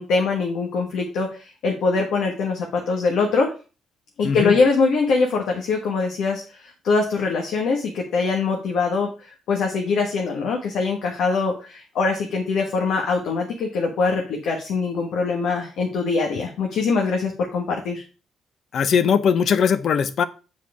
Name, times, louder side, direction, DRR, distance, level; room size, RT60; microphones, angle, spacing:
voice 1, 0.0-3.5 4.2-18.0, left 4 dB, 75° left, 1 dB, 1.4 m, -23 dB
voice 2, 4.2-4.5 18.7-20.2, left 7 dB, 60° left, 13 dB, 0.7 m, -20 dB
7.3 x 4.4 x 4.8 m, 0.34 s
cardioid pair, 90°, 0 cm